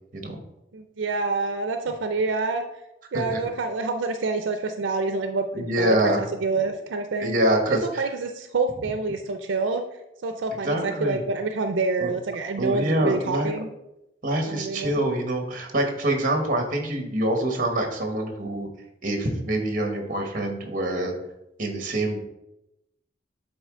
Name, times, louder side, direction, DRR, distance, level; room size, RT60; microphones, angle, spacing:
voice 1, 0.7-2.6 3.1-7.3 7.7-9.8 10.2-13.7 14.5-15.0, right 3 dB, 85° right, 7 dB, 0.5 m, -27 dB
voice 2, 5.5-6.2 7.2-8.1 10.6-11.2 12.0-12.1 12.6-13.5 14.2-18.7 19.0-21.1 21.6-22.2, right 1 dB, 45° right, 3 dB, 1.2 m, -25 dB
8.7 x 3.8 x 3.7 m, 0.88 s
head